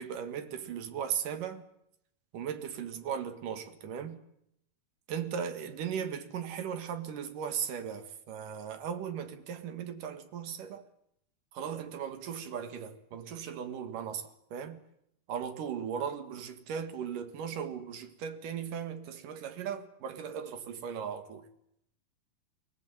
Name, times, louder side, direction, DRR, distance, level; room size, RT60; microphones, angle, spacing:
voice 1, 0.0-1.6 2.3-4.2 5.1-10.8 11.5-14.8 15.3-21.5, right 8 dB, 65° right, 3.2 m, -37 dB
22.5 x 18.0 x 9.1 m
omnidirectional pair, 4.3 m